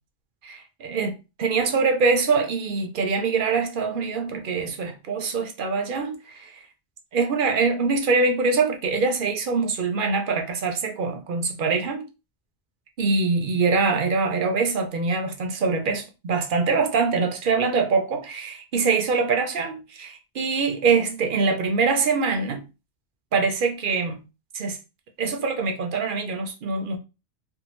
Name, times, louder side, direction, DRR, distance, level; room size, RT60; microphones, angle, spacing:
voice 1, 0.4-1.1 1.4-6.6 7.1-12.0 13.0-22.6 23.3-24.2 24.5-24.8 25.2-27.0, right 4 dB, 55° right, 0.7 m, -24 dB
2.6 x 2.4 x 2.9 m
omnidirectional pair, 1.2 m